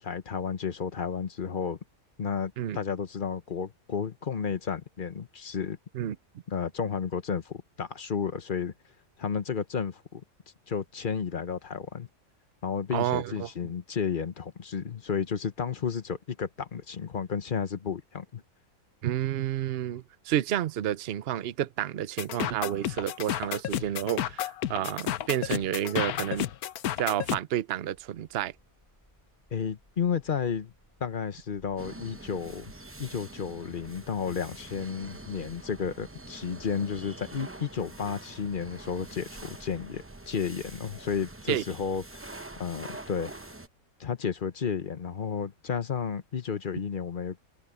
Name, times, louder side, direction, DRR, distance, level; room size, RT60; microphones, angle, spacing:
voice 1, 0.0-1.8 2.2-5.8 6.5-8.7 9.2-10.2 10.7-12.1 12.6-18.4 29.5-30.7 31.0-32.7 33.0-43.5 44.0-47.4, left 6 dB, 40° left, 1.0 m, -32 dB
voice 2, 12.9-13.5 19.0-26.5 27.0-28.5 41.5-41.6, right 11 dB, 55° right, 0.8 m, -30 dB
sound 1, 22.2-27.4, left 11 dB, 85° left, 1.2 m, -31 dB
sound 2, 27.9-42.8, equal, 10° left, 5.5 m, -60 dB
sound 3, 31.8-43.7, right 2 dB, 15° right, 0.5 m, -45 dB
omnidirectional pair, 1.5 m